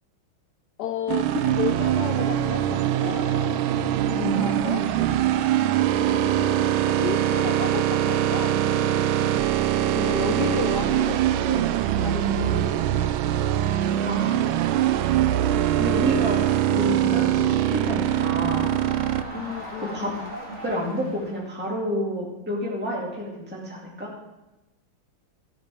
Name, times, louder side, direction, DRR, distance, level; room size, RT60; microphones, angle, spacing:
voice 1, 0.8-3.5 4.3-4.9 6.0-9.1 9.8-11.7 11.9-13.1 13.8-13.9 19.3-20.4, left 10 dB, 85° left, 8 dB, 0.9 m, -33 dB
sound 1, 1.1-19.2, right 11 dB, 80° right, 1.4 m, -23 dB
Crowd, 2.0-21.5, right 2 dB, 35° right, 1.9 m, -41 dB
voice 2, 4.1-4.6 14.1-14.6 15.8-18.7 19.8-20.1 20.6-24.1, left 1 dB, 5° right, -4 dB, 2.0 m, -29 dB
16.0 x 8.0 x 3.4 m, 0.99 s
omnidirectional pair, 2.3 m